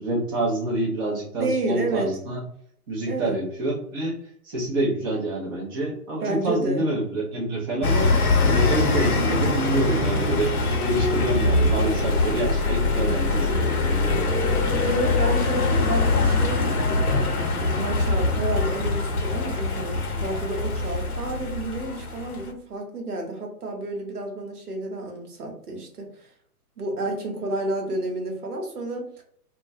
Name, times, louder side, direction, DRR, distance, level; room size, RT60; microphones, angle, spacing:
voice 1, 0.0-2.4 2.9-4.2 4.4-8.1 8.4-10.5 10.8-14.3, right 1 dB, 15° right, -4 dB, 0.5 m, -27 dB
voice 2, 1.4-2.2 3.1-3.4 6.2-6.9 14.8-26.3 26.8-29.2, right 2 dB, 85° right, 2 dB, 0.9 m, -30 dB
sound 1, 7.8-22.5, left 3 dB, 75° left, 0.8 m, -23 dB
sound 2, 7.8-13.6 13.9-17.3, left 1 dB, 45° left, 0.5 m, -36 dB
2.2 x 2.1 x 2.6 m, 0.64 s
figure-of-eight pair, 125°, 45 cm